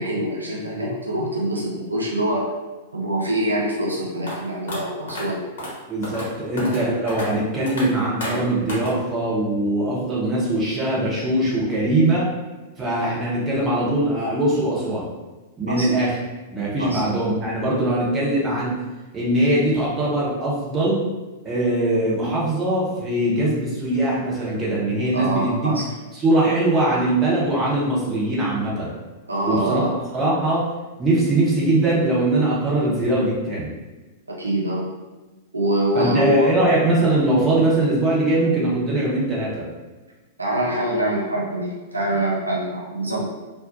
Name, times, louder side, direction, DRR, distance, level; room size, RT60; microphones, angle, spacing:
voice 1, 0.0-2.5 2.9-5.4 15.7-15.9 16.8-17.0 25.1-25.8 29.3-29.9 34.4-34.9 35.5-36.5 40.4-43.3, right 1 dB, 85° right, -3 dB, 0.5 m, -24 dB
sound 1, 4.3-4.4 4.7-4.8 5.1-5.2 5.6-5.7 6.0-6.3 6.6-6.8 7.1-7.3 7.7-7.8 8.2-8.4 8.7-8.9, left 1 dB, 60° left, 1.0 m, -30 dB
voice 2, 5.9-12.3 12.8-15.1 15.6-16.2 16.5-18.7 19.1-21.0 21.4-25.7 26.1-29.0 29.5-29.8 30.1-30.7 31.0-33.7 35.9-39.7, right 1 dB, 20° right, -6 dB, 0.8 m, -21 dB
2.5 x 2.1 x 2.5 m, 1.2 s
figure-of-eight pair, 100°, 0 cm